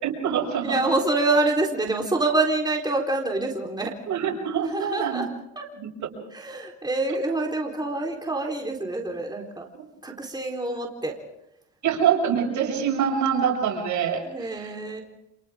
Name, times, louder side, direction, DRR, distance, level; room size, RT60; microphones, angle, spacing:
voice 1, 0.0-0.8 4.1-5.3 5.8-5.9 7.1-7.2 11.8-14.8, right 7 dB, 75° right, 0 dB, 6.7 m, -25 dB
voice 2, 0.6-3.9 4.7-5.3 5.6-5.7 6.3-9.7 10.0-11.2 14.3-15.0, right 2 dB, 15° right, 0 dB, 4.0 m, -26 dB
30.0 x 28.0 x 3.7 m, 0.87 s
cardioid pair, 90°, 30 cm